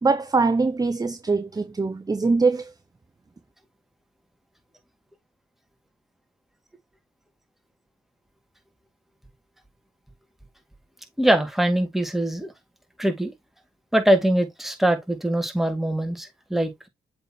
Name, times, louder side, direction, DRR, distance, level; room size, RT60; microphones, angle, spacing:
voice 1, 0.0-2.7, right 4 dB, 20° right, 0.7 m, -22 dB
voice 2, 11.2-12.5 13.0-13.3 13.9-16.9, right 1 dB, ahead, 2.2 m, -22 dB
7.8 x 4.1 x 3.0 m
supercardioid pair, 55°, 18 cm